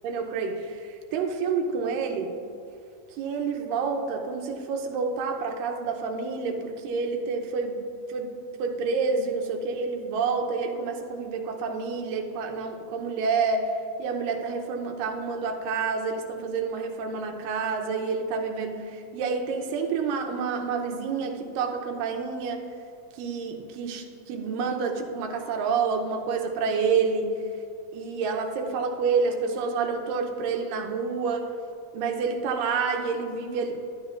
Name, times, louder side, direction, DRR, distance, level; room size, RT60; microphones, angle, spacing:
voice 1, 0.0-0.8 1.1-2.4 3.2-7.8 8.1-8.3 8.6-13.7 14.0-18.8 19.1-22.6 23.2-27.3 27.9-31.5 31.9-33.8, right 5 dB, 80° right, 3 dB, 2.4 m, -28 dB
12.5 x 9.6 x 2.5 m, 2.6 s
omnidirectional pair, 3.9 m